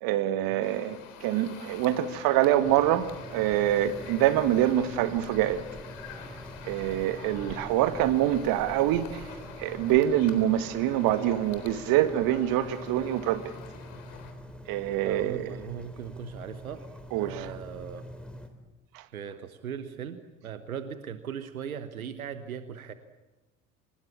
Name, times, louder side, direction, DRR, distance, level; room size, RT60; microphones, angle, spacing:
voice 1, 0.0-5.6 6.7-9.3 9.6-13.5 14.7-15.5 17.1-17.5 18.9-19.0, right 12 dB, 55° right, 1.7 m, -25 dB
sound 1, 0.6-14.3, left 7 dB, 60° left, 3.8 m, -47 dB
sound 2, 2.6-18.5, equal, ahead, 3.6 m, -44 dB
voice 2, 15.0-16.8 17.2-18.1 19.1-22.9, right 8 dB, 80° right, 1.3 m, -39 dB
26.5 x 20.0 x 8.5 m
figure-of-eight pair, 65°, 42 cm